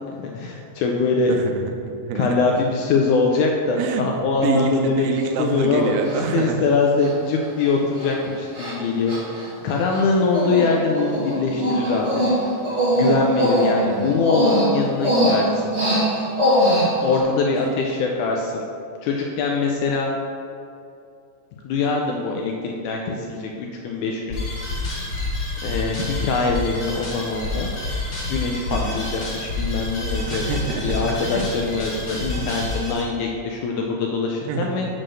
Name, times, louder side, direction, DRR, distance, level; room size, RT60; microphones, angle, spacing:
voice 1, 0.1-1.4 2.2-5.1 5.4-6.0 6.3-12.2 13.0-15.7 17.0-18.7 19.0-20.1 21.6-24.7 25.6-27.7 28.3-34.9, left 4 dB, 80° left, 0 dB, 1.8 m, -23 dB
voice 2, 1.3-2.4 3.8-6.7 13.8-14.1 28.7-28.9 30.3-31.5 34.5-34.9, right 5 dB, 85° right, 4 dB, 2.4 m, -27 dB
Human voice, 5.2-5.3 6.0-6.4 7.0-7.1 7.4-7.7 8.0-8.1 8.5-8.7 9.1-10.1 10.3-10.7 10.9-17.2, equal, 30° right, 1.3 m, -21 dB
sound 1, 24.3-33.0, left 2 dB, 45° left, 1.7 m, -28 dB
6.2 x 4.3 x 6.3 m, 2.5 s
omnidirectional pair, 4.0 m